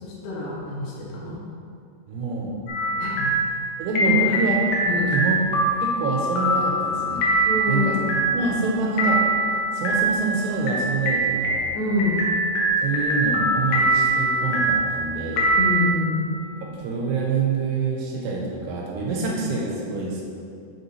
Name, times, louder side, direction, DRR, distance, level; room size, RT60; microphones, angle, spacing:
voice 1, 0.0-1.4 3.0-3.3 4.0-4.4 4.9-5.1 7.5-8.1 11.7-12.2 15.6-16.3, left 3 dB, 70° left, -6 dB, 2.5 m, -26 dB
voice 2, 2.1-2.5 3.8-4.5 5.1-5.4 5.8-7.3 7.7-8.0 8.3-9.2 9.7-11.7 12.8-15.5 16.6-20.2, right 4 dB, 85° right, -2 dB, 2.8 m, -26 dB
sound 1, 2.7-15.9, right 1 dB, 90° left, 3.1 m, -23 dB
6.6 x 5.2 x 3.1 m, 2.4 s
omnidirectional pair, 4.8 m